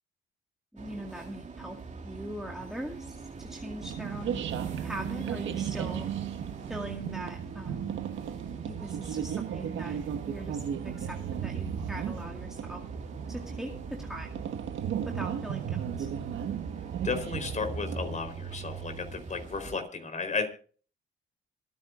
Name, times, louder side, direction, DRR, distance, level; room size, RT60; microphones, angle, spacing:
voice 1, 0.7-1.8 2.0-4.4 4.8-6.1 6.7-8.0 8.6-10.0 10.3-12.8 13.3-14.3 15.1-16.1, right 1 dB, ahead, 0 dB, 2.1 m, -41 dB
sound 1, 0.8-19.8, right 4 dB, 35° right, 2.7 m, -42 dB
sound 2, 3.8-18.2, right 9 dB, 75° right, 1.5 m, -35 dB
voice 2, 17.0-20.5, left 4 dB, 40° left, 8 dB, 4.3 m, -33 dB
26.0 x 9.4 x 2.6 m, 0.40 s
cardioid pair, 90°, 20 cm